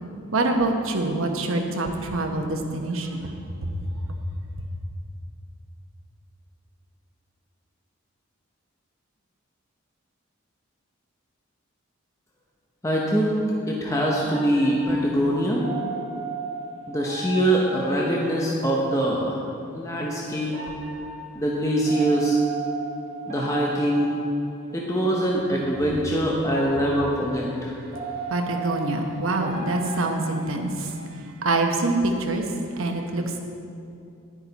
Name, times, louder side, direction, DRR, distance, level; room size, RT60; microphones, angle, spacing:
voice 1, 0.3-3.3 3.6-3.7 4.1-4.2 28.3-32.5 32.8-33.4, right 2 dB, 75° right, 3 dB, 1.0 m, -25 dB
voice 2, 12.8-15.7 16.9-19.4 19.7-20.6 21.3-22.4 23.3-24.1 24.7-27.7, right 1 dB, 15° left, -3 dB, 0.8 m, -23 dB
sound 1, 14.3-18.9 20.5-25.1 26.4-31.1, right 3 dB, 35° right, 2.0 m, -36 dB
10.0 x 9.6 x 4.1 m, 2.6 s
head